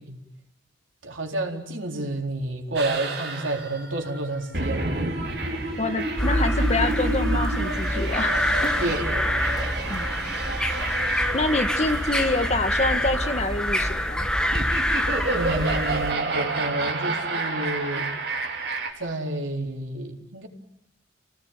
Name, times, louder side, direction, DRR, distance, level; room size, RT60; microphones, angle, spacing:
voice 1, 1.0-4.9 8.8-9.8 15.3-18.1 19.0-20.5, right 1 dB, 90° right, 2 dB, 4.2 m, -30 dB
sound 1, 2.8-18.9, right 2 dB, 55° right, 4.2 m, -30 dB
voice 2, 5.8-8.8 9.9-10.0 11.3-14.3, left 2 dB, 35° left, 8 dB, 1.7 m, -26 dB
sound 2, 6.2-16.1, equal, 5° left, 1.4 m, -26 dB
30.0 x 18.5 x 9.7 m, 0.81 s
head